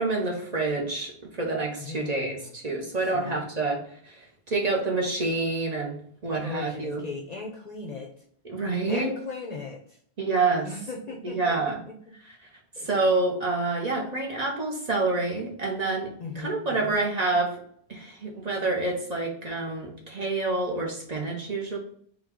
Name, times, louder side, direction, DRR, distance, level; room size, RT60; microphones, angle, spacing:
voice 1, 0.0-6.0 6.2-7.0 8.5-9.1 10.2-10.7 11.2-11.8 12.8-17.6 17.9-21.8, right 3 dB, 40° right, -1 dB, 0.8 m, -27 dB
voice 2, 1.8-2.5 3.1-3.5 6.3-8.1 8.8-10.0 10.6-11.6 11.9-12.0 12.8-12.9 16.2-17.0, left 4 dB, 45° left, 0 dB, 0.6 m, -38 dB
3.9 x 2.3 x 4.4 m, 0.63 s
omnidirectional pair, 1.1 m